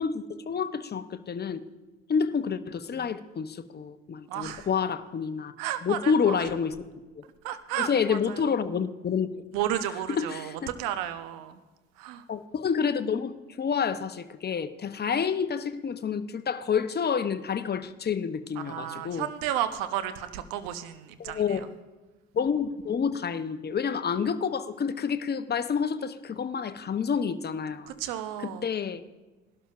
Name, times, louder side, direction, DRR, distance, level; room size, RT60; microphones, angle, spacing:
voice 1, 0.0-1.6 2.1-5.5 5.8-6.7 7.2-7.3 7.8-9.4 10.1-10.5 12.3-19.3 21.2-21.6 22.3-27.9 28.4-29.0, left 6 dB, 30° left, 11 dB, 0.8 m, -28 dB
voice 2, 4.3-4.7 5.6-6.5 7.4-8.5 9.5-11.6 12.0-12.2 18.5-21.7 27.9-28.7, right 11 dB, 70° right, 11 dB, 0.9 m, -33 dB
18.5 x 12.0 x 2.5 m, 1.2 s
hypercardioid pair, 50°, 35 cm